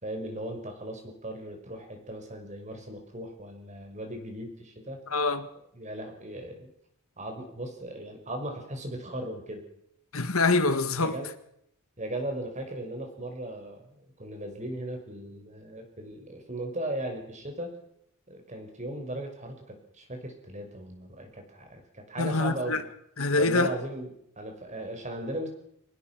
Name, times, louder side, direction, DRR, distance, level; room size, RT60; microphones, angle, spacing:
voice 1, 0.0-5.0 5.7-6.7 7.2-9.6 11.0-11.3 12.0-17.7 18.3-22.8 23.3-25.5, right 1 dB, 35° right, 5.7 m, -37 dB
voice 2, 5.1-5.5 10.1-11.2 22.2-22.8 23.2-23.7, left 3 dB, 70° left, 1.9 m, -25 dB
25.0 x 19.5 x 6.2 m
head